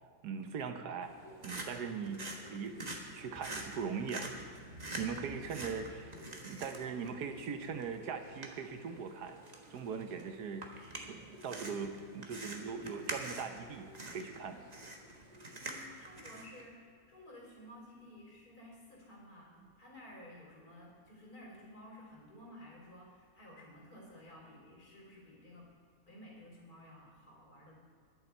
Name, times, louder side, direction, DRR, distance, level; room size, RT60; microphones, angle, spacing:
voice 1, 0.2-1.1 1.4-4.3 5.0-6.1 6.4-9.4 9.7-10.6 11.0-14.7, right 6 dB, 75° right, 7 dB, 1.4 m, -40 dB
sound 1, 1.0-16.6, right 2 dB, 25° right, 1.3 m, -46 dB
voice 2, 15.6-25.7 26.1-27.7, left 1 dB, 65° left, -2 dB, 3.8 m, -54 dB
21.0 x 7.1 x 4.5 m, 2.2 s
omnidirectional pair, 1.7 m